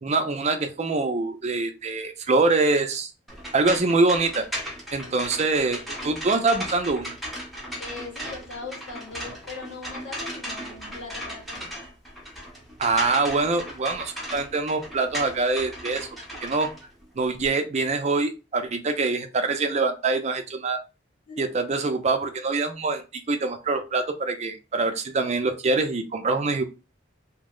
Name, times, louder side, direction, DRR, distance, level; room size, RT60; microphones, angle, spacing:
voice 1, 0.0-3.1 3.5-4.4 4.9-7.1 12.8-16.1 16.4-16.7 17.2-20.8 21.4-26.6, right 3 dB, 35° right, 7 dB, 0.4 m, -24 dB
sound 1, 3.3-17.5, equal, ahead, 0.7 m, -36 dB
voice 2, 7.8-11.7 21.3-21.5, left 3 dB, 90° left, -2 dB, 1.6 m, -40 dB
2.8 x 2.1 x 3.7 m, 0.29 s
head